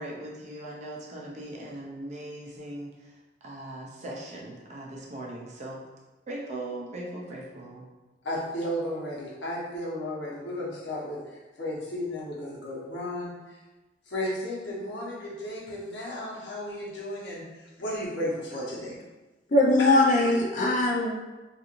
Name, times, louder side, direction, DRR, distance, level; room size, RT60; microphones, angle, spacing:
voice 1, 0.0-3.1 3.4-5.9 6.3-7.9, right 1 dB, 40° right, -3 dB, 0.4 m, -39 dB
voice 2, 8.2-13.6 14.1-19.0 19.8-20.0, left 1 dB, 75° left, -6 dB, 0.9 m, -34 dB
voice 3, 19.5-21.1, left 2 dB, 45° left, -1 dB, 0.5 m, -21 dB
3.0 x 2.4 x 2.5 m, 1.2 s
head